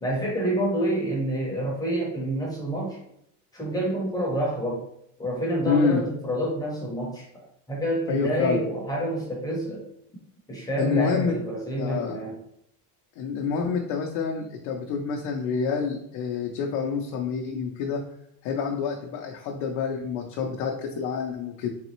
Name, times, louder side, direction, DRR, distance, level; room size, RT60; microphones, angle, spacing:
voice 1, 0.0-3.0 3.5-4.8 5.2-7.2 7.7-9.8 10.5-12.4, right 1 dB, 10° left, -4 dB, 0.7 m, -28 dB
voice 2, 5.7-6.0 8.1-8.6 10.8-11.4 11.8-12.2 13.2-18.0 18.4-21.7, left 5 dB, 50° left, 1 dB, 0.5 m, -27 dB
4.0 x 3.3 x 3.0 m, 0.74 s
cardioid pair, 175°, 38 cm